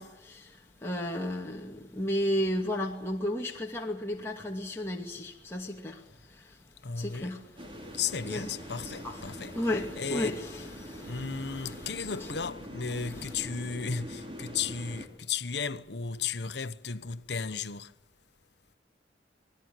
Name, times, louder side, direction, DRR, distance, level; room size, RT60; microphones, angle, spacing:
voice 1, 0.0-6.0 6.3-6.6 7.0-7.4 8.2-8.4 8.8-12.1 13.1-13.3, left 1 dB, 15° left, 2.4 m, -34 dB
voice 2, 6.8-7.4 8.0-9.5 10.0-10.4 11.1-17.9, left 5 dB, 65° left, 1.1 m, -34 dB
sound 1, 7.6-15.1, equal, 30° right, 3.6 m, -44 dB
27.0 x 20.0 x 9.1 m
head